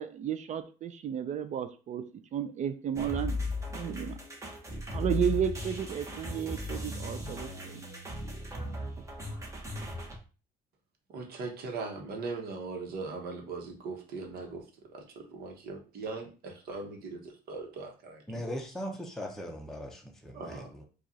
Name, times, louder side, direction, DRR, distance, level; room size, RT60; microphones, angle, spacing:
voice 1, 0.0-2.0 2.3-3.4 3.7-4.2 4.9-7.8, right 9 dB, 45° right, 10 dB, 0.4 m, -33 dB
sound 1, 3.0-10.2, left 2 dB, 15° right, 1.1 m, -37 dB
voice 2, 11.1-15.0 15.3-18.2 20.3-20.7, right 4 dB, 65° right, 2 dB, 1.1 m, -40 dB
voice 3, 18.3-20.8, equal, ahead, 0 dB, 0.7 m, -39 dB
4.7 x 2.4 x 2.7 m, 0.35 s
cardioid pair, 110°, 17 cm